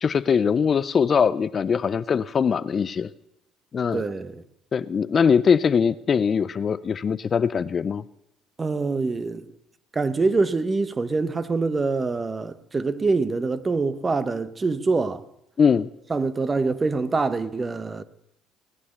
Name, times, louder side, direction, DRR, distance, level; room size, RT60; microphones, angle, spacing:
voice 1, 0.0-3.1 3.7-4.0 4.7-8.0 15.6-15.9, left 6 dB, 40° left, 0.5 m, -21 dB
voice 2, 3.9-4.4 8.6-9.5 9.9-15.2 16.1-18.0, right 3 dB, 25° right, 0.9 m, -25 dB
17.5 x 9.6 x 6.7 m
supercardioid pair, 80°, 0 cm